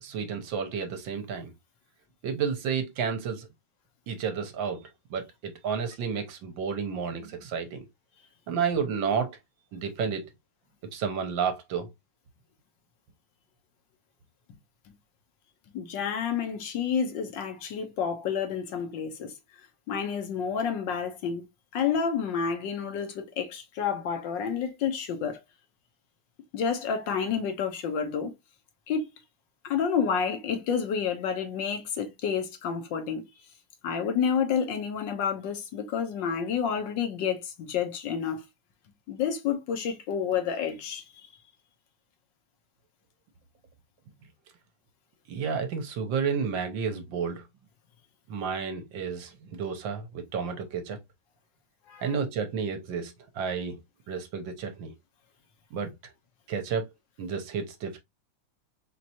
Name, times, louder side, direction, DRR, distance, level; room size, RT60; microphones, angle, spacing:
voice 1, 0.0-1.5 2.2-3.5 4.1-7.8 8.5-9.4 9.7-10.2 10.9-11.9 45.3-47.4 48.3-51.0 52.0-53.8 54.1-54.9 55.7-55.9 56.5-56.9 57.2-58.0, right 6 dB, 70° right, 1.4 m, -31 dB
voice 2, 15.7-19.3 19.9-21.4 21.7-25.4 26.5-28.3 28.9-29.0 29.6-33.3 33.8-38.4 39.1-41.3 51.9-52.1, left 7 dB, 65° left, 1.5 m, -29 dB
4.5 x 3.2 x 2.8 m
omnidirectional pair, 2.3 m